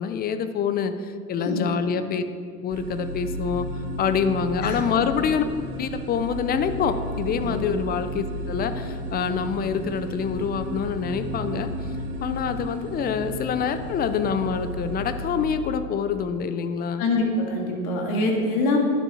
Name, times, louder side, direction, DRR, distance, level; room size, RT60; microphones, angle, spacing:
voice 1, 0.0-2.2 2.6-5.5 5.8-11.7 12.2-17.1, left 6 dB, 20° left, 10 dB, 0.4 m, -26 dB
voice 2, 1.4-1.7 4.6-4.8 7.4-7.6 17.0-18.8, left 2 dB, 65° left, 1 dB, 2.1 m, -24 dB
sound 1, 2.7-15.6, equal, 90° right, 1.1 m, -33 dB
11.0 x 7.1 x 4.2 m, 2.3 s
hypercardioid pair, 95°, 46 cm